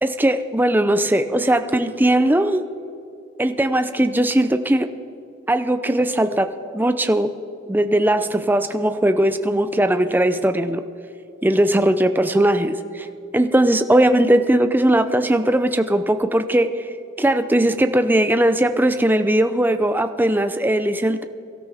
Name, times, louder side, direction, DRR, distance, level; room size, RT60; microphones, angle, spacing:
voice 1, 0.0-2.6 3.4-4.9 5.5-6.5 6.7-7.3 7.7-10.8 11.4-13.1 13.3-16.8 17.2-21.2, right 1 dB, 10° right, 9 dB, 0.5 m, -19 dB
23.0 x 13.0 x 3.5 m, 2.7 s
head